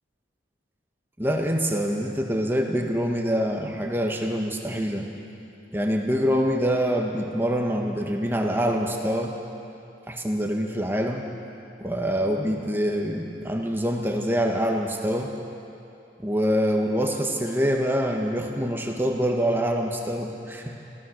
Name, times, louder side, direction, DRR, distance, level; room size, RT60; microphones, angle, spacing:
voice 1, 1.2-5.1 5.7-9.4 10.1-11.2 11.8-15.3 16.2-20.8, equal, 10° right, 1 dB, 1.5 m, -25 dB
25.5 x 16.0 x 6.5 m, 2.7 s
head